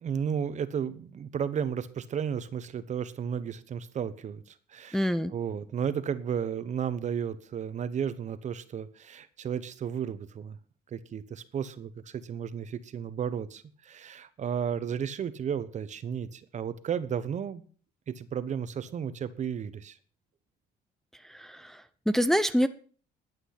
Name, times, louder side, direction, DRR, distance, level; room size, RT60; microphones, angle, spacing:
voice 1, 0.0-10.6 10.9-17.6 18.1-20.0, right 8 dB, 45° right, 14 dB, 1.1 m, -33 dB
voice 2, 4.9-5.3 21.1-22.7, equal, ahead, 11 dB, 0.6 m, -27 dB
11.5 x 9.1 x 5.9 m, 0.43 s
cardioid pair, 110°, 17 cm